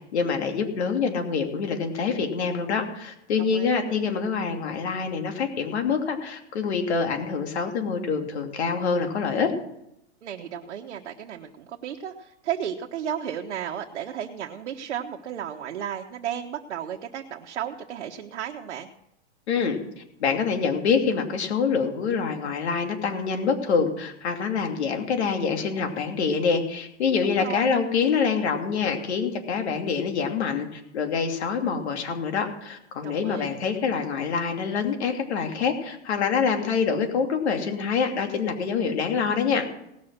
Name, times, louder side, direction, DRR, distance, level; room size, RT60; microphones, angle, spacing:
voice 1, 0.1-9.5 19.5-19.8 20.2-39.6, left 5 dB, 65° left, 4 dB, 2.8 m, -26 dB
voice 2, 3.4-3.8 10.2-18.9 27.2-27.8 33.0-33.6, right 9 dB, 75° right, 1 dB, 1.2 m, -34 dB
18.5 x 6.6 x 6.1 m, 0.81 s
hypercardioid pair, 165°, 35 cm